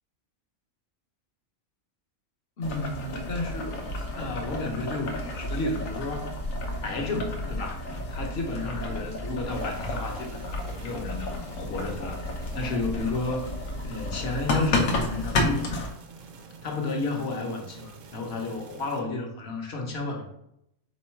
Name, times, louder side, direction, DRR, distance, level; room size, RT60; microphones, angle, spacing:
Boiling, 2.6-15.9, left 2 dB, 75° left, 1.1 m, -31 dB
voice 1, 2.6-3.9 4.1-6.3 6.8-7.8 8.1-13.5 13.8-15.9 16.6-20.2, left 2 dB, 55° left, 1 dB, 1.0 m, -32 dB
sound 1, 9.5-19.0, right 5 dB, 70° right, 1.0 m, -47 dB
3.8 x 3.0 x 4.4 m, 0.78 s
omnidirectional pair, 1.4 m